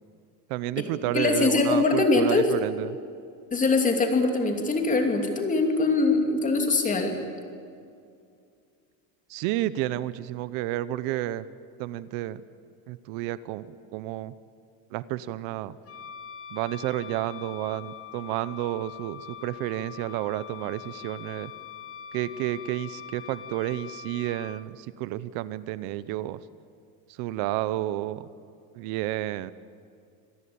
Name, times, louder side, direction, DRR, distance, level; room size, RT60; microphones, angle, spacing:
voice 1, 0.5-3.0 9.3-11.5 11.8-12.4 12.9-13.7 13.9-14.3 14.9-15.8 16.5-21.5 22.1-26.4 27.2-28.2 28.8-29.5, right 14 dB, 70° right, 16 dB, 0.9 m, -31 dB
voice 2, 1.1-2.5 3.5-7.2, left 3 dB, 20° left, 4 dB, 2.8 m, -23 dB
Wind instrument woodwind instrument, 15.8-24.6, left 8 dB, 35° left, 1.2 m, -43 dB
26.0 x 18.0 x 8.7 m, 2.3 s
cardioid pair, 165°, 39 cm